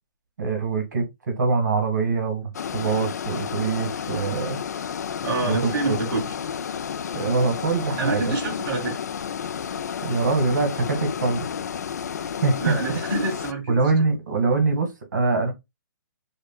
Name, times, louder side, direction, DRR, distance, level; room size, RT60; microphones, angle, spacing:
voice 1, 0.4-4.6 5.4-6.0 7.1-8.3 10.0-11.5 12.2-12.8 13.7-15.5, right 4 dB, 60° right, 1.7 m, -24 dB
sound 1, 2.5-13.5, left 7 dB, 50° left, 0.4 m, -31 dB
voice 2, 5.2-6.3 8.0-9.0 12.6-14.0, right 2 dB, 15° right, 1.9 m, -27 dB
6.4 x 2.3 x 2.2 m
hypercardioid pair, 175°, 11 cm